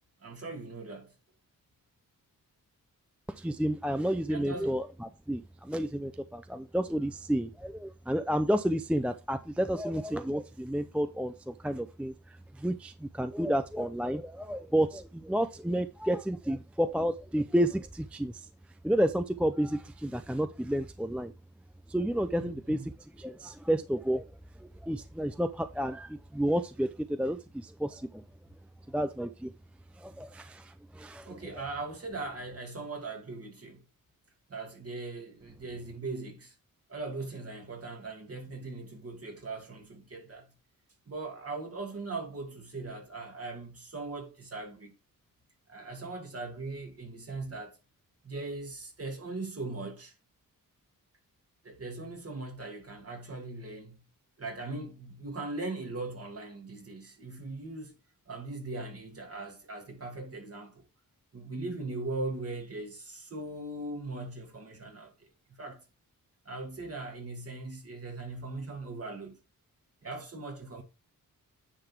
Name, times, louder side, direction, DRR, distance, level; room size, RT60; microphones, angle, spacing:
voice 1, 0.2-1.1 4.3-4.8 22.4-22.9 31.2-33.8 34.5-36.5 36.9-40.5 41.1-44.9 45.7-47.8 48.2-50.1 51.6-54.0 54.4-57.9 58.3-60.8 61.3-65.1 65.6-65.8 66.5-69.4 70.0-70.8, right 3 dB, 45° right, 2.5 m, -39 dB
voice 2, 3.3-12.1 12.5-18.5 18.8-21.3 21.9-24.3 24.6-28.2 28.9-29.5 30.0-31.4, equal, 5° right, 0.4 m, -31 dB
9.7 x 4.0 x 4.6 m
wide cardioid pair, 120°, 35 cm